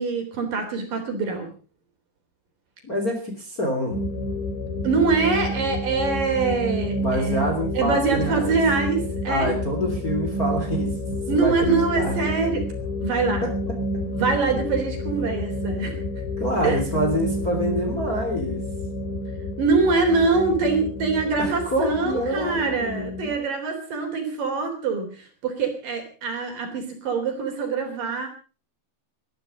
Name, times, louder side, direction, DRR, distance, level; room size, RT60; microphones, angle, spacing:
voice 1, 0.0-1.5 4.8-9.5 11.3-12.7 13.0-13.5 14.2-16.0 16.6-16.8 19.6-25.1 25.4-28.3, right 4 dB, 50° right, 5 dB, 5.0 m, -24 dB
voice 2, 2.8-4.0 7.0-8.6 9.3-10.9 11.3-12.2 13.4-13.5 16.4-18.6 21.4-23.3, equal, 20° left, 3 dB, 3.3 m, -26 dB
sound 1, 3.9-23.4, left 1 dB, 85° left, 5.2 m, -29 dB
20.0 x 13.0 x 5.2 m, 0.37 s
omnidirectional pair, 5.0 m